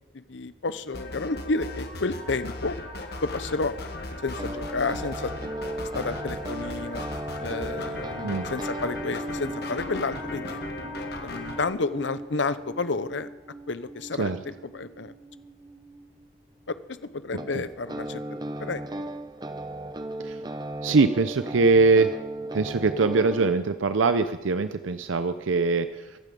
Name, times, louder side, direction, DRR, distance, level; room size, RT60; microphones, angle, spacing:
voice 1, 0.1-2.8 3.2-3.8 4.2-5.3 5.9-7.1 7.4-10.6 11.2-13.3 13.7-15.1 16.7-16.8 17.1-18.2 18.6-18.8, left 3 dB, 70° left, 13 dB, 0.8 m, -30 dB
sound 1, 0.9-11.7, left 2 dB, 55° left, 1.6 m, -37 dB
sound 2, 4.3-16.3 17.3-23.5, right 1 dB, 20° right, 0.7 m, -37 dB
voice 2, 20.8-22.1 22.5-26.2, right 3 dB, 90° right, 10 dB, 0.6 m, -22 dB
24.0 x 9.3 x 5.3 m, 1.1 s
head